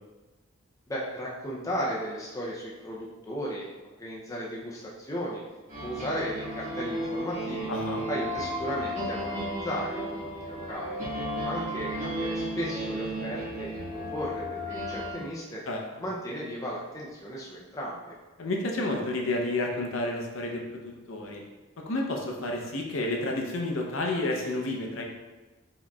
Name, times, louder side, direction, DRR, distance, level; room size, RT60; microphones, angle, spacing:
voice 1, 0.9-3.7 4.0-5.4 5.8-7.7 8.1-11.0 11.4-15.6 16.0-18.1, equal, 15° left, -4 dB, 0.4 m, -35 dB
sound 1, 5.7-15.1, equal, 35° right, 1.2 m, -34 dB
voice 2, 7.7-8.1 15.7-15.8 18.4-21.4 21.9-25.0, left 2 dB, 60° left, 0 dB, 0.6 m, -30 dB
4.7 x 2.9 x 2.3 m, 1.2 s
head